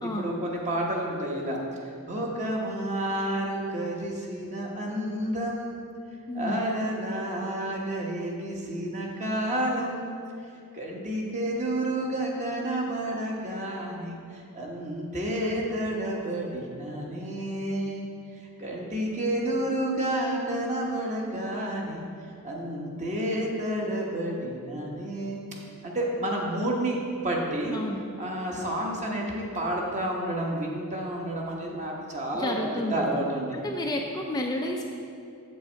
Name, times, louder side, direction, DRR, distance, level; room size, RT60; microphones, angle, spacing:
voice 1, 0.0-1.6 2.1-5.8 6.3-10.1 10.7-18.1 18.6-22.1 22.4-25.4 25.8-27.8 28.2-33.5, right 1 dB, 35° right, -1 dB, 1.2 m, -30 dB
voice 2, 6.3-6.7 27.7-28.0 32.3-33.1 33.6-34.9, left 1 dB, 20° left, 1 dB, 0.4 m, -31 dB
7.8 x 6.8 x 4.5 m, 2.4 s
head